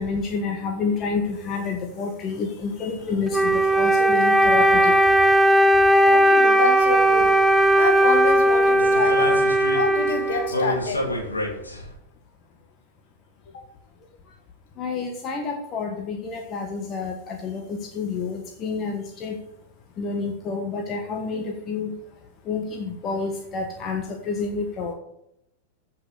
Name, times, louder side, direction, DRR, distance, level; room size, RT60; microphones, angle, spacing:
voice 1, 0.0-4.9 14.8-19.3 20.0-21.9 22.5-24.9, left 4 dB, 30° left, 4 dB, 1.5 m, -29 dB
Wind instrument woodwind instrument, 3.3-10.9, right 1 dB, 5° right, 0.8 m, -18 dB
voice 2, 6.0-7.3 7.7-9.4 9.7-11.0 13.5-13.6, left 3 dB, 60° left, 4 dB, 2.5 m, -27 dB
sound 1, 6.7-11.9, left 1 dB, 75° left, 2.9 m, -31 dB
14.5 x 5.9 x 6.7 m, 0.80 s
figure-of-eight pair, 90°, 0 cm